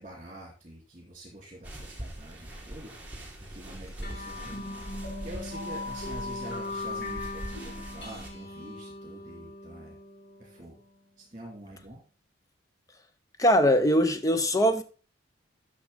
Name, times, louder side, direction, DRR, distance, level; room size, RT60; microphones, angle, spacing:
voice 1, 0.0-2.9 3.4-4.7 5.2-10.0 10.4-10.8 11.2-12.0, right 1 dB, 30° right, 2.8 m, -46 dB
sound 1, 1.6-8.3, right 1 dB, 10° right, 1.8 m, -42 dB
sound 2, 4.0-10.9, left 2 dB, 55° left, 2.4 m, -39 dB
voice 2, 13.4-14.8, equal, 15° left, 0.7 m, -21 dB
11.0 x 6.1 x 4.0 m
head